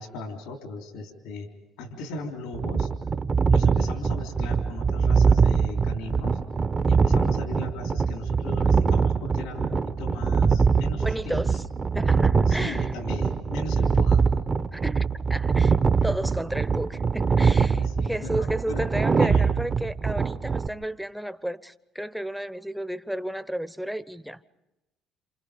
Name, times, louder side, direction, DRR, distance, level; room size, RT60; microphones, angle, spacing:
voice 1, 0.0-1.5 1.8-2.9 3.5-6.4 6.8-11.5 12.5-14.2 16.0-16.1 17.7-18.9 19.2-19.4, left 2 dB, 80° left, 3.5 m, -37 dB
sound 1, 2.5-20.7, right 5 dB, 35° right, 1.0 m, -23 dB
voice 2, 10.9-11.7 11.9-12.9 14.7-24.4, right 1 dB, ahead, 0.9 m, -33 dB
28.0 x 28.0 x 5.2 m
supercardioid pair, 80°, 0 cm